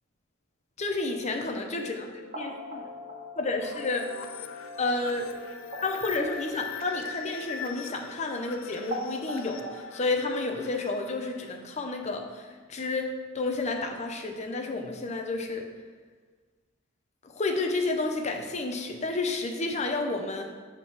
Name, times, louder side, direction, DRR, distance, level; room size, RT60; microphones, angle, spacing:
voice 1, 0.8-2.9 3.4-4.1 4.8-5.3 5.8-9.7 9.9-12.2 12.7-15.7 17.3-20.5, left 3 dB, 35° left, 3 dB, 0.7 m, -30 dB
sound 1, 1.0-9.8, equal, 40° right, 1.5 m, -42 dB
sound 2, 3.6-12.2, left 5 dB, 70° left, 0.5 m, -42 dB
6.6 x 3.8 x 6.1 m, 1.5 s
head